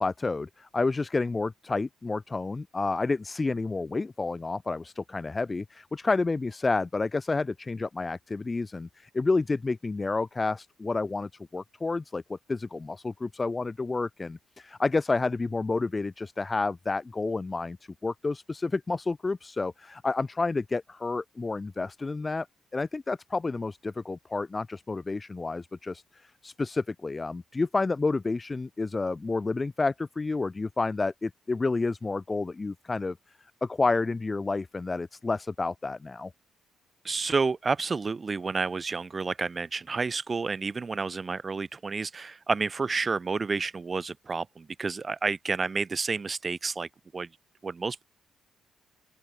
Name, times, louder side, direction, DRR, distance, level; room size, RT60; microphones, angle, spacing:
voice 1, 0.0-17.8 18.0-22.5 22.7-33.2 33.6-36.3, left 3 dB, 25° left, 2.9 m, -30 dB
voice 2, 37.0-46.9 47.1-47.3 47.6-48.0, right 4 dB, 30° right, 5.8 m, -30 dB
open air
cardioid pair, 90°, 0 cm